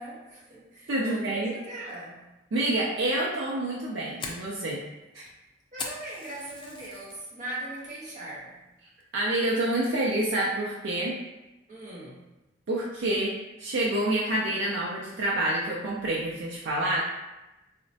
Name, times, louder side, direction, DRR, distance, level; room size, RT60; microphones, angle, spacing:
voice 1, 0.0-2.2 5.7-8.6 11.7-12.2, right 1 dB, 45° right, -6 dB, 0.8 m, -40 dB
voice 2, 0.9-1.5 2.5-4.8 5.1-5.2 9.1-11.2 12.7-13.3 13.6-17.0, right 1 dB, 85° right, -4 dB, 0.5 m, -27 dB
Fire, 3.6-7.2 7.6-8.0 8.3-8.5 9.0-9.3, left 4 dB, 25° left, 0.3 m, -40 dB
3.9 x 2.1 x 2.7 m, 1.0 s
head